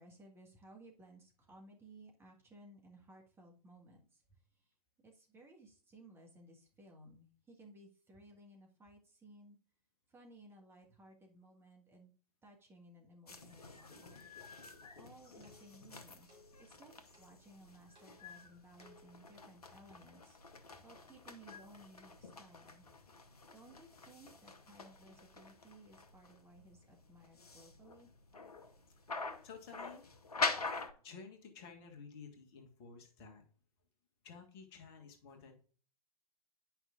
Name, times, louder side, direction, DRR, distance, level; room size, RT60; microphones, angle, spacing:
voice 1, 0.0-4.2 4.5-4.7 5.0-9.6 10.1-12.1 12.4-16.3 16.6-22.9 23.5-28.1, right 1 dB, 10° right, -1 dB, 1.5 m, -59 dB
sound 1, 13.3-30.9, left 3 dB, 75° left, 1.0 m, -45 dB
sound 2, 14.8-19.4, left 1 dB, 30° right, 3.8 m, -67 dB
voice 2, 29.4-30.0 31.0-33.4 34.2-35.5, left 5 dB, 40° left, 3 dB, 1.6 m, -53 dB
9.8 x 5.8 x 2.5 m, 0.43 s
figure-of-eight pair, 105°, 20 cm